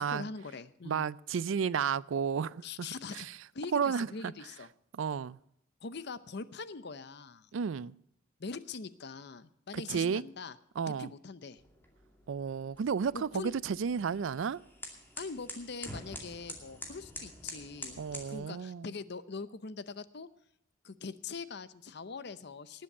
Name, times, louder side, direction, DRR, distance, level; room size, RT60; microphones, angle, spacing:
voice 1, 0.0-1.1 2.6-3.3 3.5-4.7 5.8-7.5 8.4-10.6 11.0-11.6 13.1-13.5 15.2-20.3 20.8-22.8, left 4 dB, 60° left, 0.7 m, -42 dB
voice 2, 0.8-2.9 3.1-3.3 3.7-4.3 4.9-5.4 7.5-7.9 9.7-10.2 10.8-11.1 12.3-14.6 18.0-18.9, right 6 dB, 80° right, 0.4 m, -32 dB
sound 1, 11.6-18.3, left 1 dB, 10° left, 2.3 m, -47 dB
19.0 x 7.6 x 5.4 m
head